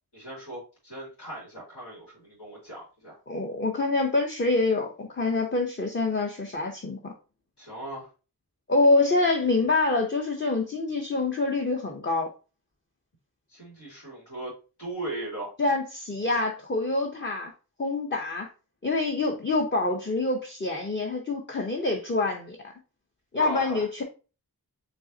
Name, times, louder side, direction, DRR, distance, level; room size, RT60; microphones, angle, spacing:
voice 1, 0.1-3.2 7.6-8.1 13.5-14.5 14.8-15.5 23.4-23.8, right 1 dB, 90° left, -6 dB, 2.5 m, -38 dB
voice 2, 3.3-7.1 8.7-12.3 15.6-17.5 17.8-18.5 18.8-22.6 23.3-24.0, left 3 dB, 30° left, 1 dB, 0.7 m, -26 dB
5.4 x 3.2 x 2.7 m, 0.33 s
wide cardioid pair, 70°, 39 cm